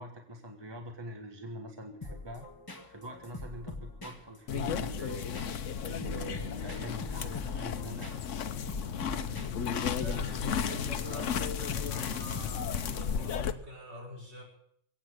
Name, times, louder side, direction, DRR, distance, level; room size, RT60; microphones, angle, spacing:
voice 1, 0.0-2.5 2.9-5.2 5.9-8.2, right 1 dB, 20° right, 3 dB, 1.4 m, -44 dB
sound 1, 2.0-12.9, left 2 dB, 20° left, 1.6 m, -45 dB
sound 2, 4.5-13.5, left 7 dB, 80° left, 1.2 m, -34 dB
voice 2, 10.0-14.4, left 2 dB, 60° right, -3 dB, 5.9 m, -43 dB
23.0 x 8.8 x 6.5 m, 0.66 s
omnidirectional pair, 1.3 m